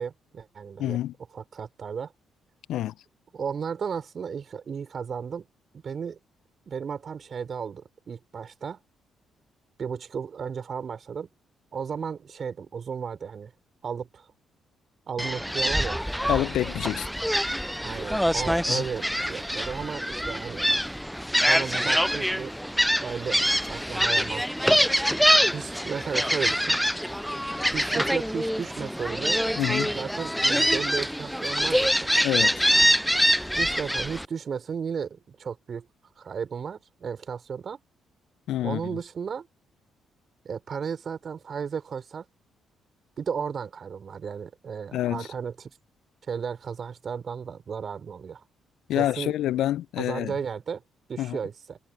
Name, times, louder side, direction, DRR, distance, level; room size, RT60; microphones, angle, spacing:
voice 1, 0.0-1.0 1.3-2.1 3.3-5.5 5.7-6.2 6.7-8.8 9.8-11.3 11.7-13.5 13.8-14.3 15.1-16.0 17.8-20.7 21.3-22.5 23.0-24.8 25.5-26.8 27.7-29.4 29.9-32.2 33.6-35.9 36.2-37.8 38.6-39.5 40.4-42.3 43.2-45.7 46.3-48.4 48.9-49.3 50.0-50.8 51.1-51.8, right 6 dB, 50° right, 5.6 m, -34 dB
voice 2, 0.8-1.1 2.7-2.9 16.3-17.1 18.7-18.8 29.6-29.9 32.2-32.7 38.5-38.8 44.9-45.3 48.9-50.3 51.2-51.4, left 13 dB, 70° left, 0.9 m, -27 dB
Gull seagull, 15.2-34.3, equal, ahead, 0.4 m, -25 dB
hypercardioid pair, 45°, 0 cm